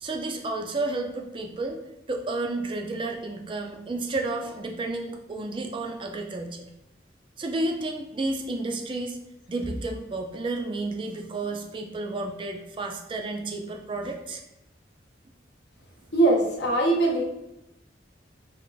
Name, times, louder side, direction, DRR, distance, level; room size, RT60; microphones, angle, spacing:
voice 1, 0.0-1.8 2.1-6.7 7.4-9.2 9.5-14.4, right 2 dB, 25° right, 3 dB, 0.3 m, -31 dB
voice 2, 16.1-17.2, right 2 dB, 70° left, 1 dB, 0.7 m, -21 dB
3.4 x 2.4 x 3.8 m, 0.88 s
head